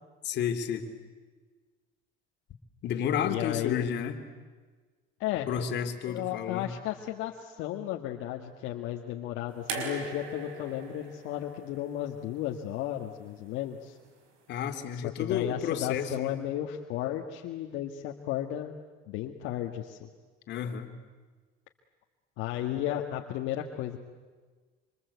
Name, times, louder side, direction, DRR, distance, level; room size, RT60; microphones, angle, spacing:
voice 1, 0.2-0.8 2.8-4.2 5.5-6.7 14.5-16.4 20.5-20.9, left 8 dB, 60° left, 6 dB, 2.8 m, -31 dB
voice 2, 3.2-3.9 5.2-5.5 6.1-14.0 14.9-18.7 19.1-20.1 22.4-24.0, left 12 dB, 75° left, 2 dB, 1.7 m, -34 dB
sound 1, 9.7-12.8 14.0-14.1, right 4 dB, 80° right, 5.1 m, -40 dB
26.5 x 26.0 x 8.2 m, 1.4 s
cardioid pair, 115°, 20 cm